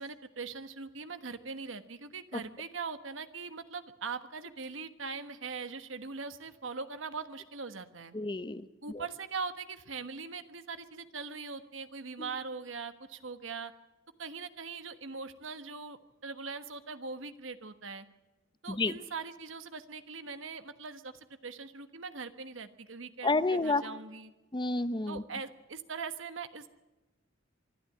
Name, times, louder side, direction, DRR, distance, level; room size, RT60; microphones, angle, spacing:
voice 1, 0.0-8.1 8.8-13.7 14.2-18.1 18.6-24.3 25.1-26.7, right 4 dB, 80° right, 10 dB, 1.3 m, -41 dB
voice 2, 8.1-8.6 18.7-18.9 23.2-23.8 24.5-25.2, left 3 dB, 25° left, 14 dB, 0.7 m, -29 dB
25.0 x 12.5 x 8.5 m, 1.1 s
head